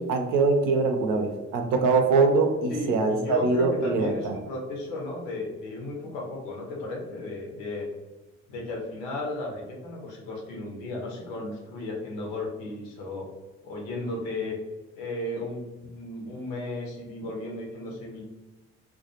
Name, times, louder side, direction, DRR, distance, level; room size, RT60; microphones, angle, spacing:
voice 1, 0.0-4.3, right 4 dB, 65° right, 4 dB, 0.5 m, -23 dB
voice 2, 2.7-7.9 8.5-13.3 13.6-14.6 15.0-18.2, left 2 dB, 80° left, -1 dB, 0.7 m, -34 dB
2.2 x 2.2 x 2.8 m, 1.1 s
hypercardioid pair, 45°, 34 cm